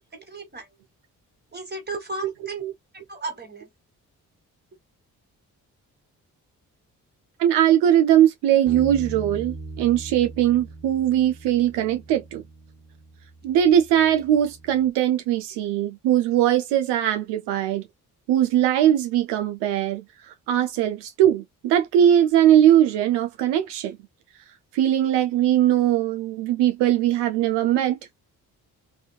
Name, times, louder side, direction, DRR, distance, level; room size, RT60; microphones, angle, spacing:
voice 1, 0.3-0.7 1.5-2.6 2.9-3.7, right 2 dB, 25° right, 1.5 m, -34 dB
voice 2, 7.4-12.4 13.4-17.8 18.3-20.0 20.5-24.0 24.7-28.2, right 11 dB, 80° right, 0.5 m, -20 dB
Bass guitar, 8.7-14.9, right 3 dB, 45° right, 0.8 m, -40 dB
2.6 x 2.3 x 2.3 m
supercardioid pair, 45°, 40 cm